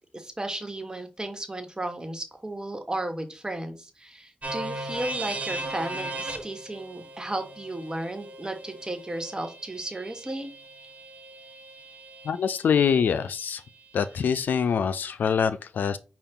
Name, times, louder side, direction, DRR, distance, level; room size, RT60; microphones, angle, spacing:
voice 1, 0.1-10.5, right 1 dB, 25° right, 1.3 m, -34 dB
sound 1, 4.4-12.3, right 2 dB, 45° right, 1.3 m, -37 dB
voice 2, 12.3-13.6 13.9-16.0, left 7 dB, 90° left, 0.3 m, -24 dB
5.6 x 2.3 x 3.6 m
cardioid pair, 50°, 3 cm